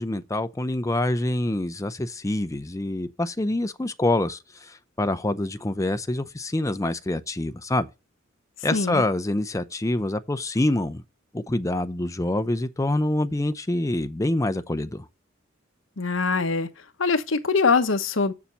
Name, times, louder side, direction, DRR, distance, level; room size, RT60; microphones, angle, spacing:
voice 1, 0.0-7.9 8.6-11.0 11.3-15.1, left 1 dB, 15° left, 0.6 m, -26 dB
voice 2, 8.7-9.0 16.0-16.7 17.0-18.3, left 4 dB, 80° left, 1.0 m, -23 dB
7.3 x 7.0 x 5.4 m
head